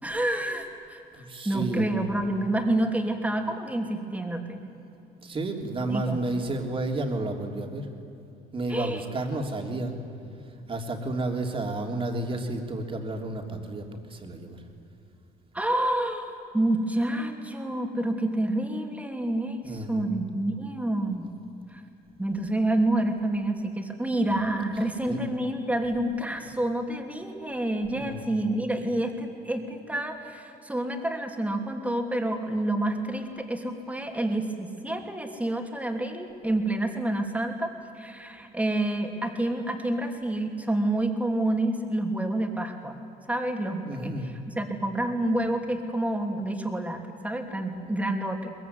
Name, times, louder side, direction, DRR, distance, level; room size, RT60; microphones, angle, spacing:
voice 1, 0.0-4.6 5.9-6.5 8.7-9.0 15.5-21.3 21.7-21.8 22.2-43.0 43.3-44.1 44.6-48.5, right 1 dB, 10° right, 3 dB, 3.0 m, -28 dB
voice 2, 1.1-2.0 5.2-7.9 8.5-9.9 10.7-14.6 19.6-20.1 25.1-25.2 27.9-28.3 43.9-44.3, right 2 dB, 30° right, 3 dB, 3.4 m, -31 dB
22.5 x 21.5 x 9.6 m, 2.8 s
cardioid pair, 110°, 17 cm